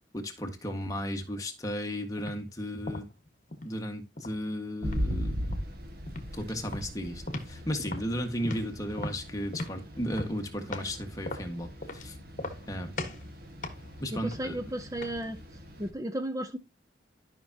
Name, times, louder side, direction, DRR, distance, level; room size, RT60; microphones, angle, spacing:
voice 1, 0.1-3.1 3.6-5.4 6.3-12.2 12.7-13.1 14.0-14.6, equal, 20° left, 1.6 m, -35 dB
sound 1, 2.2-2.4 2.9-3.8 4.2-5.1 5.4-5.7 6.1-6.3 6.6-7.6 7.9-11.0 11.2-12.1 12.3-12.7 13.0-13.3 13.6-15.3, left 2 dB, 45° left, 1.5 m, -38 dB
sound 2, 4.8-15.9, equal, 55° right, 1.7 m, -39 dB
voice 2, 14.1-15.4 15.8-16.6, right 1 dB, 20° right, 0.6 m, -34 dB
12.5 x 5.9 x 2.8 m
head